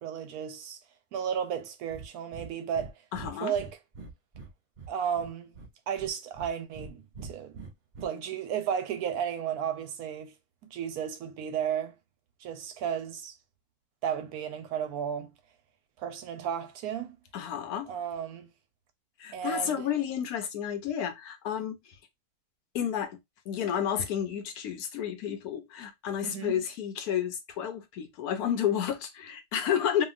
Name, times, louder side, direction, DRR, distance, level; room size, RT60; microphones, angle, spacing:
voice 1, 0.0-0.8 1.1-2.9 3.4-3.8 4.9-5.5 5.9-7.7 8.0-10.3 10.6-11.9 12.4-13.3 14.0-15.3 16.0-17.2 17.9-18.5 19.3-19.9 26.2-26.6, right 8 dB, 90° right, 1.1 m, -33 dB
Breathing, 1.9-2.1 2.3-2.9 3.1-4.5 4.8-5.7 6.0-6.9 7.1-8.1, right 4 dB, 65° right, 0.4 m, -43 dB
voice 2, 3.1-3.5 17.3-17.9 19.2-21.8 22.7-23.2 23.5-30.1, left 9 dB, 90° left, 1.2 m, -31 dB
2.8 x 2.6 x 2.4 m
omnidirectional pair, 1.5 m